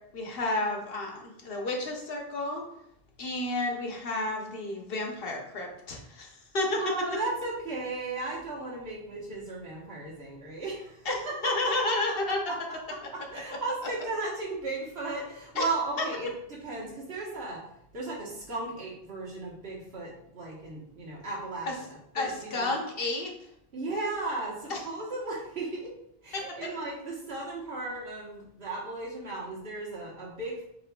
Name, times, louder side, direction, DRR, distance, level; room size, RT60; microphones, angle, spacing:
voice 1, 0.1-2.6 3.2-6.8 11.0-11.2 11.4-12.4 15.5-15.6 16.0-16.1 21.7-21.8 22.1-23.3 24.7-24.8 26.3-26.6, left 2 dB, 70° left, 1 dB, 1.0 m, -31 dB
voice 2, 6.8-11.1 11.4-11.9 12.5-12.6 13.1-17.6 17.9-22.7 23.7-25.9 26.2-30.7, right 3 dB, 85° right, -4 dB, 1.5 m, -35 dB
7.3 x 3.0 x 2.2 m, 0.78 s
omnidirectional pair, 1.0 m